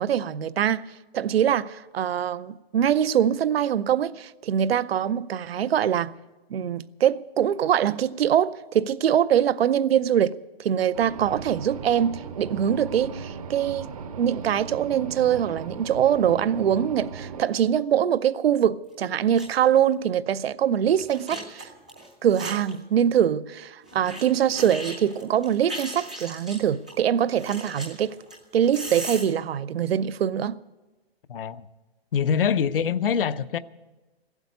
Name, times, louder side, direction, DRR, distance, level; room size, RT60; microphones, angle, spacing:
voice 1, 0.0-6.1 6.5-13.9 14.2-21.7 22.2-28.2 28.5-30.6, right 9 dB, 70° right, 0.6 m, -23 dB
sound 1, 10.9-17.4, right 5 dB, 35° right, 0.7 m, -37 dB
sound 2, 18.9-19.0 19.3-19.7 19.9-20.0 20.9-22.8 23.8-26.9 27.4-29.3, right 1 dB, 5° right, 0.4 m, -38 dB
voice 2, 31.3-31.7 32.1-33.6, left 7 dB, 60° left, 0.6 m, -24 dB
15.0 x 8.2 x 9.5 m
hypercardioid pair, 170°, 31 cm